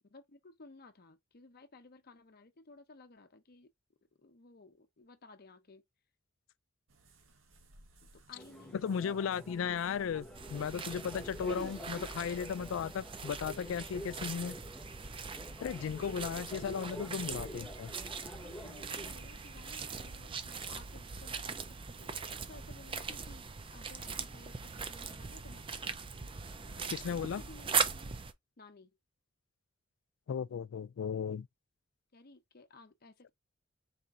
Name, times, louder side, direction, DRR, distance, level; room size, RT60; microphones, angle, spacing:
voice 1, 0.1-3.7 4.2-5.8 8.1-9.1 9.5-10.1 15.8-16.4 17.3-17.7 18.4-26.0 26.7-28.1 28.6-29.0 32.1-33.3, left 3 dB, 50° left, 0.8 m, -57 dB
sound 1, 6.9-12.4, right 2 dB, 80° right, 1.0 m, -62 dB
sound 2, 8.3-19.1, equal, 5° left, 0.8 m, -48 dB
voice 2, 8.7-14.6 15.6-17.9 26.9-27.4 30.3-31.5, left 7 dB, 75° left, 0.3 m, -36 dB
sound 3, 10.3-28.3, right 5 dB, 25° right, 0.5 m, -40 dB
4.3 x 2.6 x 3.6 m
head